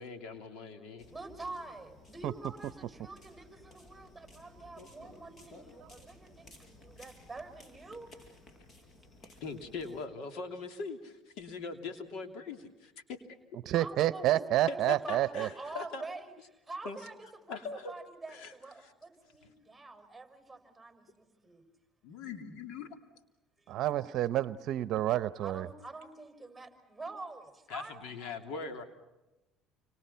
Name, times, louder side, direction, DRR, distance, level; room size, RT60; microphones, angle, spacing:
voice 1, 0.0-1.0 9.2-13.2 14.7-16.0 16.8-17.0 17.5-17.9 18.3-18.9 22.0-23.0 27.7-28.8, left 4 dB, 70° left, 7 dB, 3.1 m, -41 dB
sound 1, 1.0-10.1, left 2 dB, 40° left, 6.0 m, -56 dB
voice 2, 1.1-8.3 13.7-16.3 16.7-21.6 25.4-28.4, right 3 dB, 5° right, 7 dB, 5.9 m, -46 dB
voice 3, 13.7-15.5 23.7-25.7, right 14 dB, 60° right, 16 dB, 0.8 m, -29 dB
29.5 x 26.0 x 5.7 m, 1.0 s
supercardioid pair, 90°, 0 cm